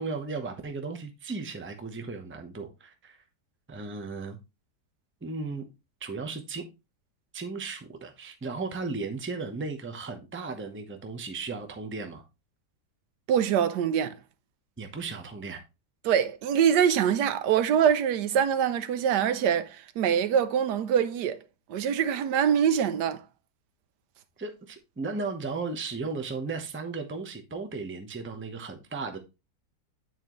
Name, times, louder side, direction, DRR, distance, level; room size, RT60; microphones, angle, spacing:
voice 1, 0.0-3.2 3.7-4.4 5.2-5.7 6.0-6.6 7.3-12.2 14.8-15.6 24.4-29.2, right 4 dB, 10° right, 0.6 m, -35 dB
voice 2, 13.3-14.1 16.0-21.4 21.7-23.2, right 8 dB, 90° right, 1.3 m, -24 dB
9.2 x 4.3 x 3.0 m
omnidirectional pair, 1.8 m